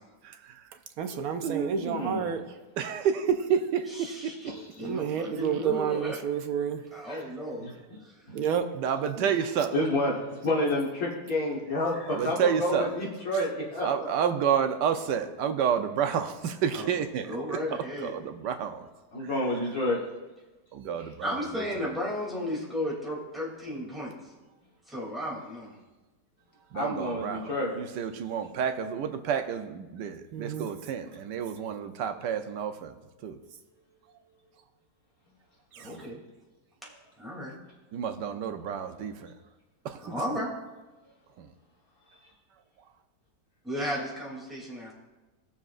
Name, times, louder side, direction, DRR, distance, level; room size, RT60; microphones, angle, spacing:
voice 1, 0.2-0.6 1.4-1.8 2.8-3.9 4.2-4.3 5.1-5.2 8.7-9.7 12.1-12.9 13.8-17.6 18.0-18.9 19.2-19.3 20.7-21.6 26.7-32.9 33.2-33.4 35.7-36.0 37.9-39.3 39.8-40.0 41.4-41.5, right 8 dB, 85° right, 7 dB, 1.4 m, -30 dB
voice 2, 1.0-2.5 4.8-6.8 8.3-8.7 30.3-30.7, right 7 dB, 65° right, 6 dB, 1.0 m, -30 dB
voice 3, 1.8-2.3 4.5-5.4 7.1-7.2 7.6-7.7 9.2-9.3 9.7-13.9 19.1-20.0 21.0-21.1 26.7-27.8, left 1 dB, 60° left, -4 dB, 1.9 m, -30 dB
voice 4, 3.9-4.5 4.8-6.2 6.9-7.7 8.0-8.2 16.7-16.9 17.3-18.2 21.2-24.2 24.9-25.7 35.7-36.2 37.2-37.5 40.0-40.5 43.6-44.9, equal, ahead, -6 dB, 2.6 m, -34 dB
19.0 x 7.1 x 2.5 m, 1.2 s
omnidirectional pair, 1.8 m